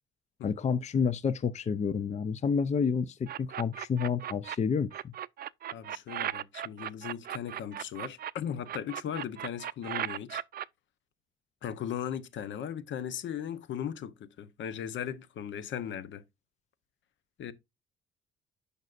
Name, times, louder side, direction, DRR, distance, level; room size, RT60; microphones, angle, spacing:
voice 1, 0.4-5.1, left 6 dB, 35° left, 0.5 m, -29 dB
sound 1, 3.3-4.6 4.9-8.3 8.7-10.7, right 11 dB, 50° right, 0.4 m, -36 dB
voice 2, 5.7-10.4 11.6-16.2 17.4-17.5, left 9 dB, 70° left, 0.9 m, -37 dB
10.5 x 5.3 x 2.5 m
cardioid pair, 90°, 20 cm